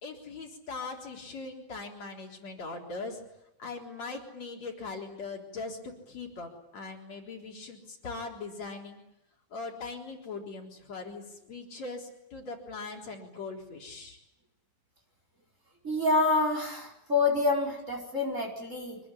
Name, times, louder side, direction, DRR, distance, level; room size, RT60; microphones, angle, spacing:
voice 1, 0.0-3.2 3.6-9.0 9.5-14.2, left 3 dB, 60° left, 0 dB, 5.1 m, -40 dB
voice 2, 15.8-19.0, left 3 dB, 25° right, 2 dB, 5.1 m, -27 dB
25.0 x 20.5 x 9.9 m, 0.85 s
omnidirectional pair, 3.5 m